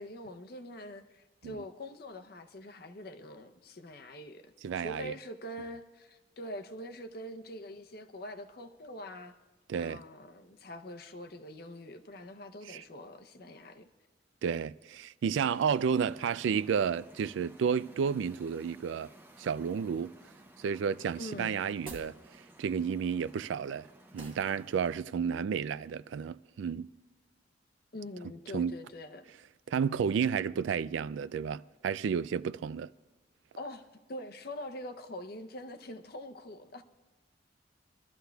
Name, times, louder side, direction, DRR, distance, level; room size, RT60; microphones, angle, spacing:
voice 1, 0.0-9.3 9.8-13.9 15.9-16.0 21.2-21.6 27.9-29.3 33.6-33.8 34.1-36.8, left 1 dB, 50° left, 0.7 m, -44 dB
voice 2, 4.6-5.1 9.7-10.0 12.7-12.8 14.4-19.1 19.4-20.1 20.6-22.2 22.6-23.9 24.1-26.9 28.5-28.7 29.7-32.9, right 6 dB, 75° right, 0.3 m, -31 dB
sound 1, 15.4-25.0, right 1 dB, 10° right, 0.6 m, -56 dB
sound 2, 21.8-22.2 24.2-24.5, right 2 dB, 25° right, 1.2 m, -46 dB
23.5 x 13.0 x 2.3 m
head